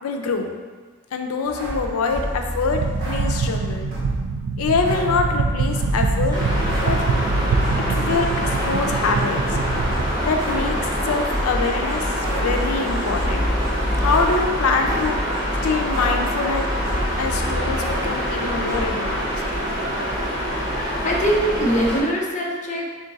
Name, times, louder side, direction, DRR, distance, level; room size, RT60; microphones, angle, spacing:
voice 1, 0.0-0.5 1.1-3.9 4.6-6.4 6.8-7.0 7.9-9.4 10.2-10.8 11.0-13.5 14.0-15.2 15.6-16.7 17.2-19.4, left 4 dB, 85° left, 4 dB, 0.4 m, -24 dB
sound 1, 1.4-4.3 4.8-8.0 8.3-15.4 15.6-18.8, equal, 60° right, 1.3 m, -31 dB
sound 2, 2.7-10.1, right 4 dB, 90° right, 0.3 m, -24 dB
sound 3, 6.3-22.0, equal, 20° right, 0.8 m, -25 dB
voice 2, 20.7-22.9, right 1 dB, 35° left, -2 dB, 0.5 m, -22 dB
3.7 x 2.5 x 3.9 m, 1.5 s
head